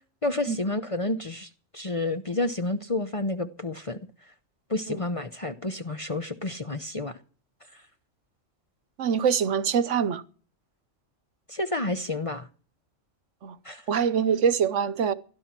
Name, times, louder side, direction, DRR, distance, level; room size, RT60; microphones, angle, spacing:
voice 1, 0.2-4.0 4.7-7.2 11.5-12.5 13.6-13.8, left 2 dB, 30° left, 0.7 m, -30 dB
voice 2, 9.0-10.2 13.4-13.6 13.9-15.1, right 7 dB, 70° right, 1.2 m, -24 dB
16.5 x 11.5 x 5.9 m
omnidirectional pair, 1.3 m